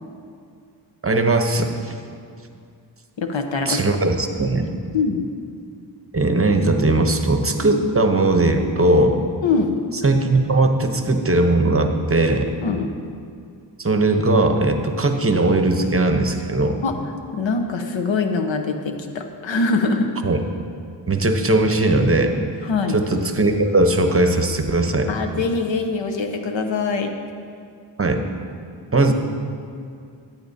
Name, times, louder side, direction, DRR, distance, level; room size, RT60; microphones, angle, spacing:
voice 1, 1.0-1.9 3.6-4.7 6.1-9.2 10.0-12.5 13.8-16.8 20.2-20.4 21.1-22.4 22.9-25.1 28.0-28.2 28.9-29.1, right 2 dB, 30° right, 5 dB, 0.8 m, -19 dB
voice 2, 3.2-4.0 4.9-5.2 7.7-7.8 9.4-9.7 12.6-12.9 16.8-16.9 17.3-20.1 22.6-23.0 25.1-27.1, left 4 dB, 80° left, 5 dB, 0.8 m, -23 dB
14.0 x 9.0 x 2.7 m, 2.3 s
wide cardioid pair, 65°, 45 cm